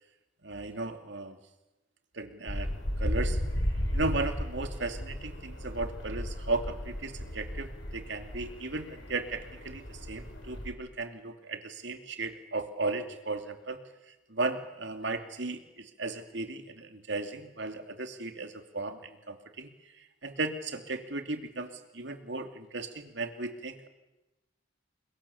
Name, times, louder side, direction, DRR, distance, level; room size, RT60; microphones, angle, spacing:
voice 1, 0.4-1.4 2.1-3.4 3.9-13.8 14.1-19.7 20.0-23.9, right 3 dB, 65° right, 6 dB, 2.9 m, -36 dB
sound 1, 2.5-10.7, equal, 80° left, 5.5 m, -35 dB
30.0 x 24.0 x 7.2 m, 1.0 s
head